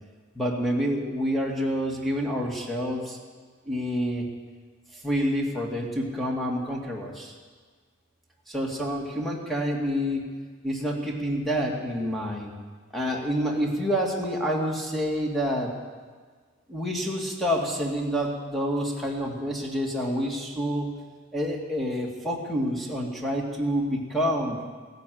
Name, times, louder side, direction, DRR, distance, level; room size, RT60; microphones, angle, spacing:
voice 1, 0.3-3.2 3.7-4.2 4.9-7.3 8.5-10.2 10.6-12.5 12.9-15.7 16.7-20.9 21.3-24.6, equal, ahead, -1 dB, 2.2 m, -28 dB
16.0 x 10.5 x 7.8 m, 1.5 s
head